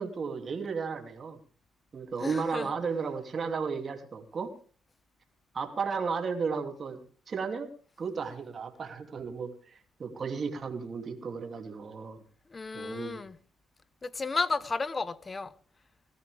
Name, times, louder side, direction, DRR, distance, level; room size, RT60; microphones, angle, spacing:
voice 1, 0.0-1.4 1.9-4.5 5.5-7.7 8.0-9.7 10.0-12.2 12.7-13.2, right 5 dB, 45° right, 2.7 m, -34 dB
voice 2, 2.2-2.7 12.5-13.4 14.0-15.5, left 4 dB, 30° left, 1.0 m, -33 dB
19.5 x 13.5 x 3.4 m
cardioid pair, 90°, 0 cm